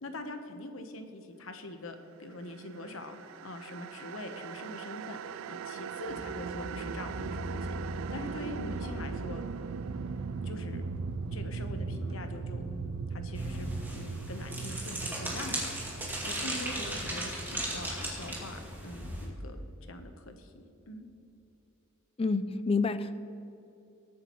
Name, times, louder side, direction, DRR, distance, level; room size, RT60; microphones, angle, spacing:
voice 1, 0.0-5.2 5.5-7.8 8.1-9.4 10.4-10.8 11.3-12.6 13.1-15.8 16.2-19.6 19.9-20.5 20.9-21.1, left 1 dB, 75° left, 6 dB, 1.1 m, -43 dB
sound 1, 2.7-17.9, right 6 dB, 75° right, 0.3 m, -40 dB
sound 2, 6.1-13.8, equal, 25° right, 1.6 m, -41 dB
sound 3, 13.3-19.3, right 1 dB, 10° right, 2.5 m, -37 dB
voice 2, 22.2-23.2, left 4 dB, 30° left, 12 dB, 0.4 m, -28 dB
21.0 x 8.6 x 3.1 m, 2.8 s
head